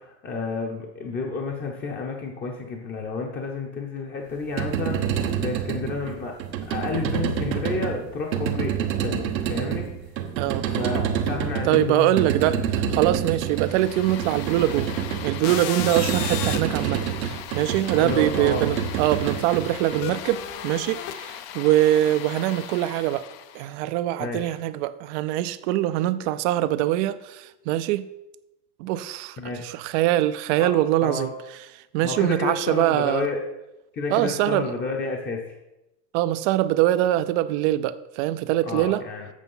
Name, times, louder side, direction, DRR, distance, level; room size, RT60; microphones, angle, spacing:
voice 1, 0.0-6.3 6.7-9.9 10.7-12.7 17.9-18.7 24.2-24.5 29.4-29.7 30.6-31.3 32.0-33.4 33.9-35.4 38.6-39.3, left 4 dB, 20° left, 0.8 m, -31 dB
sound 1, 4.3-20.5, right 8 dB, 90° right, 1.2 m, -28 dB
voice 2, 10.4-10.9 11.6-12.6 12.9-14.9 15.2-23.3 23.5-28.0 28.8-31.3 31.7-33.3 34.1-34.7 36.1-39.0, right 14 dB, 45° right, 0.5 m, -23 dB
sound 2, 13.5-23.7, left 10 dB, 50° left, 0.7 m, -36 dB
8.4 x 6.1 x 5.5 m
supercardioid pair, 130°, 50 cm